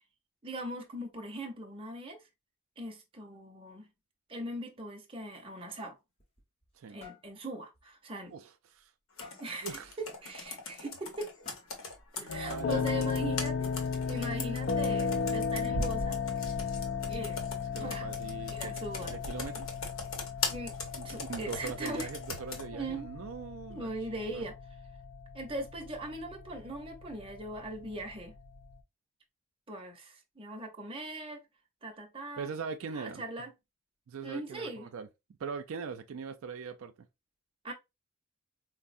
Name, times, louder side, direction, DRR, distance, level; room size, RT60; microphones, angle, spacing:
voice 1, 0.4-2.2 2.8-3.9 4.3-6.0 6.9-8.3 9.4-11.3 12.1-13.7 14.1-16.2 17.1-17.4 17.8-18.1 18.5-19.2 20.5-20.8 21.0-22.1 22.7-23.1 23.7-24.5 25.3-28.4 29.7-31.4 31.8-32.5 32.9-33.5 34.2-34.9 37.6-37.7, right 1 dB, 25° right, 0.6 m, -40 dB
sound 1, 6.0-6.7 7.0-7.3 7.7-7.9 8.3-8.4 9.2-9.6 10.7-10.8 11.4-11.9, left 5 dB, 30° left, 0.8 m, -52 dB
voice 2, 8.3-8.9 9.6-9.9 12.2-12.9 17.7-19.7 21.0-23.9 24.2-24.5 32.4-33.2 34.1-35.1 35.4-36.9, right 5 dB, 75° right, 0.4 m, -41 dB
Computer keyboard, 9.2-22.7, left 3 dB, 75° left, 0.9 m, -40 dB
sound 2, 12.3-28.8, left 5 dB, 50° left, 0.3 m, -36 dB
4.4 x 2.0 x 2.5 m
head